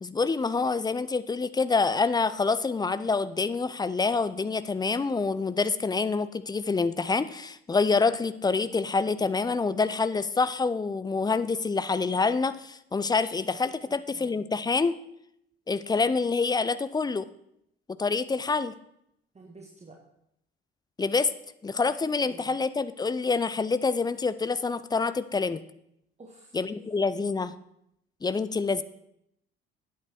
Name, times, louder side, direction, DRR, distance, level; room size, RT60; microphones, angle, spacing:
voice 1, 0.0-15.0 15.7-17.3 18.0-18.7 21.0-21.3 21.6-25.6 26.5-27.5 28.2-28.8, left 4 dB, 15° left, 14 dB, 0.5 m, -26 dB
voice 2, 13.8-14.4 19.3-20.0 22.0-22.6 26.2-26.6, right 3 dB, 20° right, 0 dB, 1.6 m, -51 dB
9.0 x 8.6 x 4.6 m, 0.77 s
figure-of-eight pair, 50°, 30 cm